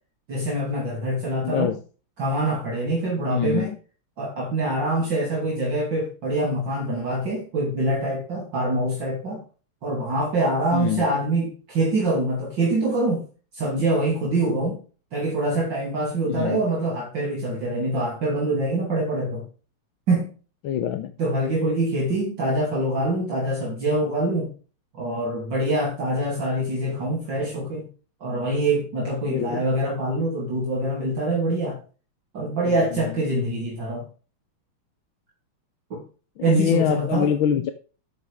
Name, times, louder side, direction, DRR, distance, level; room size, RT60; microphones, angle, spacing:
voice 1, 0.3-1.7 2.2-3.7 4.2-9.4 9.8-13.3 13.5-14.8 15.1-19.4 20.1-20.3 21.2-24.5 24.9-27.9 28.2-31.8 32.3-34.1 35.9-36.0 36.4-37.3, right 1 dB, 55° right, -3 dB, 3.4 m, -24 dB
voice 2, 1.4-1.8 3.3-3.8 10.7-11.1 16.3-16.6 20.6-21.1 29.2-29.6 32.6-33.2 36.4-37.7, left 9 dB, 70° left, 9 dB, 1.6 m, -25 dB
12.5 x 8.5 x 3.5 m, 0.36 s
omnidirectional pair, 2.4 m